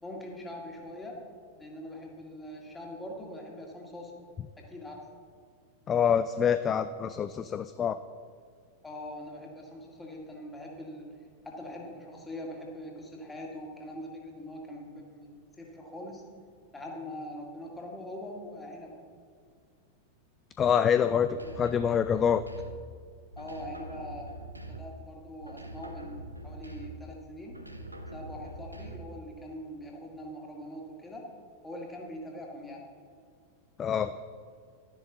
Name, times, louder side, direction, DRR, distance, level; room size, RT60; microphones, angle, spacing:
voice 1, 0.0-1.2 1.6-4.2 4.6-5.0 8.8-11.1 11.4-16.3 16.7-19.0 21.4-21.6 23.4-27.6 28.1-31.3 31.6-32.9, left 1 dB, 10° left, 0 dB, 2.1 m, -42 dB
voice 2, 5.9-8.0 20.6-22.4 33.8-34.1, left 8 dB, 25° left, 12 dB, 0.3 m, -26 dB
sound 1, 21.2-23.0 23.3-25.1 25.4-27.1 27.5-29.2, right 1 dB, 85° right, 0.7 m, -43 dB
12.0 x 10.5 x 3.9 m, 2.1 s
figure-of-eight pair, 90°, 0 cm